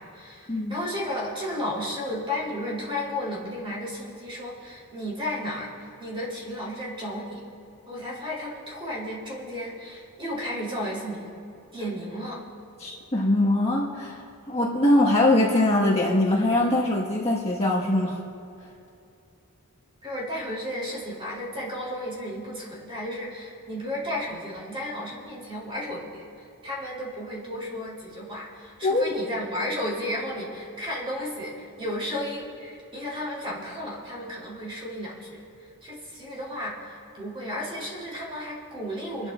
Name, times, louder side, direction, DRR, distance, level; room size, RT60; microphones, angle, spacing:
voice 1, 0.0-7.4 7.9-11.3 11.7-12.4 20.0-39.3, left 1 dB, 25° right, -5 dB, 3.8 m, -33 dB
voice 2, 12.8-14.2 14.5-18.2 28.8-29.0, left 1 dB, 30° left, -5 dB, 1.6 m, -22 dB
28.0 x 12.5 x 2.6 m, 2.7 s
head